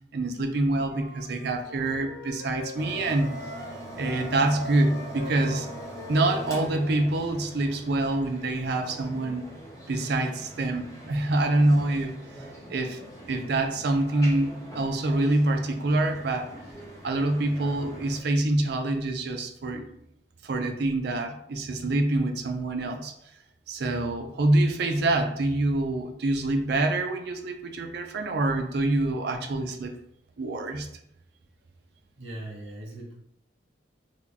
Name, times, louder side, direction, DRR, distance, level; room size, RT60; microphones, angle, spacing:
voice 1, 0.1-3.3 4.0-5.7 6.1-9.5 9.9-12.2 12.7-13.0 13.3-16.5 17.0-19.9 20.4-23.1 23.7-29.9 30.4-30.9, right 2 dB, 55° right, 5 dB, 0.4 m, -26 dB
Wind instrument woodwind instrument, 0.8-3.7 4.0-7.2, left 3 dB, 75° left, 0.5 m, -42 dB
sound 1, 2.7-18.2, right 1 dB, 15° left, 0.6 m, -43 dB
voice 2, 32.2-33.1, right 1 dB, 80° right, -3 dB, 1.3 m, -39 dB
3.6 x 2.2 x 3.5 m, 0.75 s
head